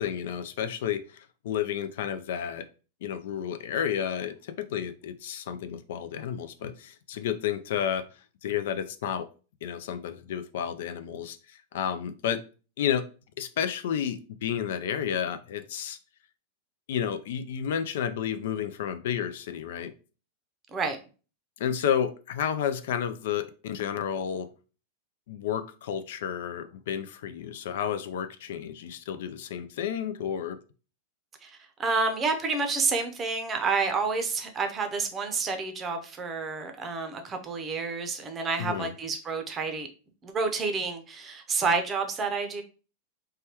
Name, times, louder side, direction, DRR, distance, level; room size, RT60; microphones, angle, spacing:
voice 1, 0.0-2.6 3.0-8.0 8.4-9.3 9.6-12.4 12.8-13.0 13.4-16.0 16.9-19.9 21.6-24.5 25.3-30.6 38.6-38.9, left 9 dB, 70° left, 11 dB, 0.3 m, -31 dB
voice 2, 31.4-39.9 40.2-42.6, right 4 dB, 25° right, 6 dB, 0.6 m, -29 dB
3.3 x 2.2 x 2.8 m, 0.35 s
hypercardioid pair, 130°, 0 cm